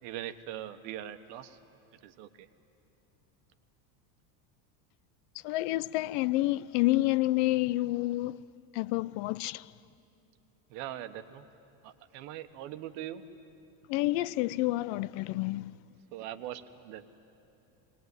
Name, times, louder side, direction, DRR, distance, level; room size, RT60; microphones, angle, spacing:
voice 1, 0.0-1.6 2.0-2.5 10.7-11.5 11.8-13.2 16.1-17.1, right 12 dB, 70° right, 1.4 m, -41 dB
voice 2, 5.4-8.4 8.7-9.7 13.9-15.7, left 18 dB, 55° left, 0.5 m, -29 dB
21.5 x 20.0 x 9.6 m
supercardioid pair, 125°, 49 cm